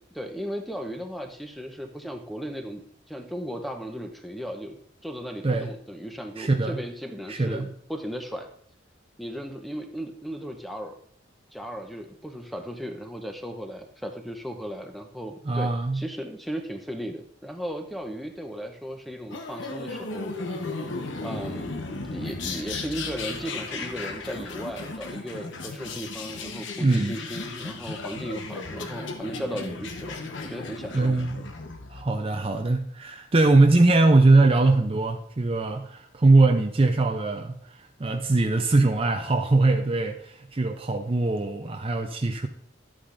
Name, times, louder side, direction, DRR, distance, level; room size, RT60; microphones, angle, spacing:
voice 1, 0.1-2.8 3.1-4.8 5.0-8.5 9.2-11.0 11.5-20.3 21.2-21.8 22.0-30.2 30.4-31.2, equal, ahead, 4 dB, 0.8 m, -36 dB
voice 2, 6.4-6.8 7.3-7.7 15.5-16.0 26.8-27.1 30.9-31.4 31.9-42.5, right 2 dB, 30° right, 5 dB, 0.5 m, -21 dB
sound 1, 19.3-32.0, left 3 dB, 75° left, 1.0 m, -35 dB
11.5 x 8.6 x 2.6 m, 0.63 s
head